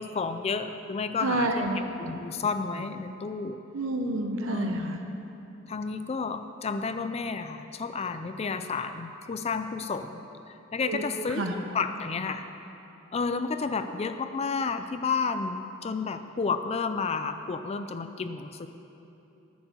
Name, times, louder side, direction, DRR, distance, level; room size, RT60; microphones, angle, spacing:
voice 1, 0.0-3.6 4.5-5.0 5.7-10.2 10.7-12.5 13.1-18.7, left 4 dB, 30° left, 9 dB, 0.4 m, -31 dB
voice 2, 1.2-1.8 3.7-5.0 10.9-11.0 11.4-11.5, right 2 dB, 70° right, 3 dB, 0.7 m, -28 dB
10.5 x 7.0 x 7.1 m, 3.0 s
head